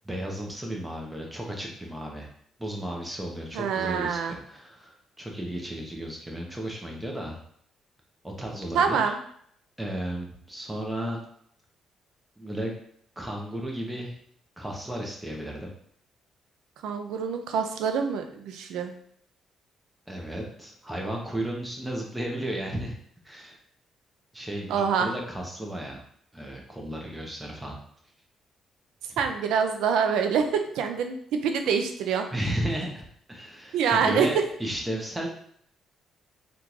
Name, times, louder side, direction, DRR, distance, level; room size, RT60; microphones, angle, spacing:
voice 1, 0.0-2.3 2.6-7.4 8.2-9.1 9.8-11.2 12.4-12.7 13.2-14.2 14.6-15.7 20.1-23.0 23.2-23.6 24.3-26.0 26.3-27.8 29.1-29.2 32.3-35.3, right 1 dB, 10° right, 0 dB, 0.9 m, -34 dB
voice 2, 3.5-4.4 8.7-9.2 16.8-18.9 24.7-25.1 29.2-32.3 33.7-34.3, right 6 dB, 90° right, 6 dB, 0.4 m, -25 dB
3.7 x 2.4 x 2.9 m, 0.64 s
cardioid pair, 90°, 0 cm